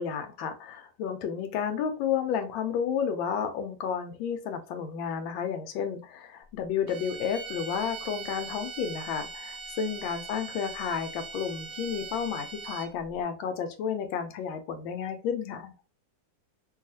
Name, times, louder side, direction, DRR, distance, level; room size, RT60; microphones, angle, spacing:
voice 1, 0.0-15.7, left 7 dB, 80° left, 7 dB, 1.3 m, -31 dB
sound 1, 6.9-13.1, right 5 dB, 70° right, 1.0 m, -41 dB
3.1 x 2.3 x 2.7 m, 0.34 s
omnidirectional pair, 2.1 m